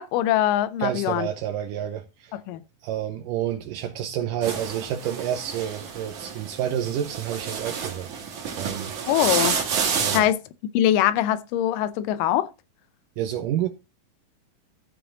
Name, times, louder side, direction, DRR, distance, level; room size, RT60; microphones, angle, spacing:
voice 1, 0.0-1.3 2.3-2.6 9.1-9.6 10.1-10.4 10.7-12.5, left 12 dB, 80° left, 2.3 m, -22 dB
voice 2, 0.8-2.4 2.8-8.1 8.6-8.9 10.0-10.3 13.2-13.7, right 10 dB, 80° right, 2.4 m, -29 dB
sound 1, 4.4-10.2, right 6 dB, 60° right, 3.4 m, -29 dB
13.5 x 6.8 x 3.7 m
omnidirectional pair, 3.9 m